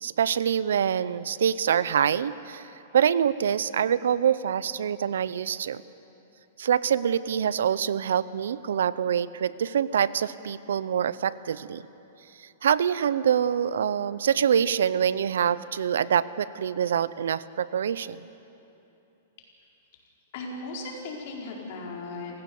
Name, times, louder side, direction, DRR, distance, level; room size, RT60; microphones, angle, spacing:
voice 1, 0.0-2.7 2.9-5.8 6.6-11.9 12.4-18.3, right 8 dB, 85° right, 18 dB, 0.6 m, -25 dB
voice 2, 20.3-22.4, left 3 dB, 55° left, -1 dB, 4.8 m, -37 dB
28.5 x 15.5 x 7.0 m, 2.9 s
hypercardioid pair, 145°, 0 cm